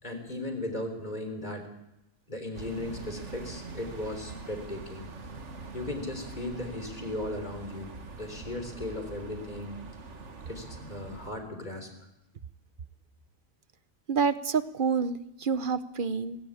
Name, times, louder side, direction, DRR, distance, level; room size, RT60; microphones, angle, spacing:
voice 1, 0.0-1.7 2.3-5.1 5.7-7.9 8.2-9.8 10.5-11.9, left 1 dB, 35° left, 6 dB, 3.7 m, -37 dB
sound 1, 2.5-11.3, right 3 dB, 70° right, 2.0 m, -43 dB
voice 2, 14.1-16.4, right 5 dB, 50° right, 14 dB, 0.9 m, -28 dB
18.5 x 17.0 x 8.7 m, 0.89 s
omnidirectional pair, 1.3 m